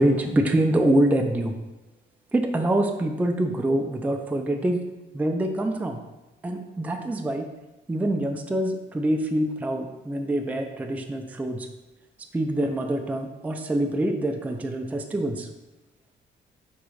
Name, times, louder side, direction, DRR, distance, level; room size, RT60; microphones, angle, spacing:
voice 1, 0.0-1.5 2.3-4.8 5.1-6.0 6.4-7.5 7.9-11.7 12.3-15.5, right 1 dB, 10° right, 4 dB, 0.4 m, -25 dB
3.6 x 3.1 x 4.8 m, 1.0 s
cardioid pair, 90°, 20 cm